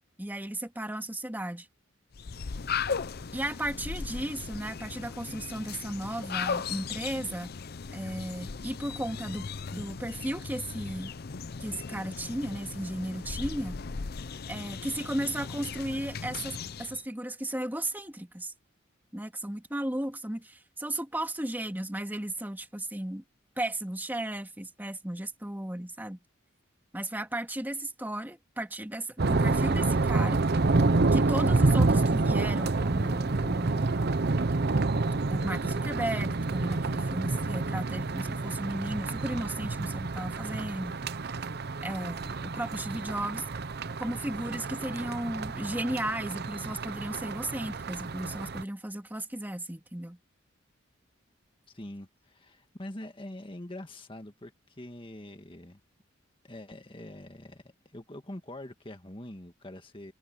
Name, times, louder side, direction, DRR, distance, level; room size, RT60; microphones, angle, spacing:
voice 1, 0.2-1.7 3.3-7.5 7.9-9.5 9.7-11.1 11.6-13.8 14.5-18.5 19.1-23.2 23.6-26.2 26.9-30.4 31.1-34.0 35.3-41.0 41.8-43.5 44.0-50.2, right 1 dB, 10° right, 2.0 m, -35 dB
sound 1, 2.1-17.0, left 5 dB, 50° left, 0.6 m, -37 dB
sound 2, 29.2-48.6, right 3 dB, 55° right, 0.7 m, -28 dB
voice 2, 51.7-55.8 56.4-60.1, left 1 dB, 25° left, 1.8 m, -44 dB
head